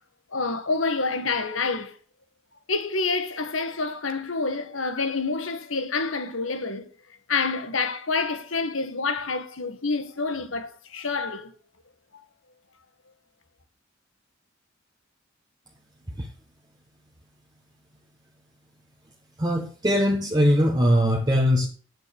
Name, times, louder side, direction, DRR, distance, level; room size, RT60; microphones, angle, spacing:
voice 1, 0.3-2.0 2.7-6.9 7.3-11.5 12.1-12.2, left 4 dB, 85° left, 1.7 m, -28 dB
voice 2, 19.4-21.7, equal, 20° right, 1.3 m, -21 dB
9.4 x 7.9 x 6.6 m
head